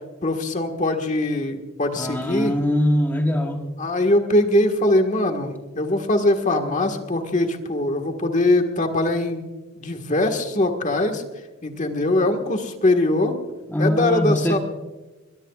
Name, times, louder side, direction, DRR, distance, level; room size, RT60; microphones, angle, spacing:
voice 1, 0.2-2.5 3.8-11.2 11.6-13.3 13.8-14.6, left 1 dB, 40° left, 5 dB, 1.7 m, -22 dB
voice 2, 2.0-3.7 13.7-14.6, left 1 dB, 10° left, 2 dB, 1.2 m, -22 dB
22.0 x 22.0 x 2.4 m, 1.2 s
head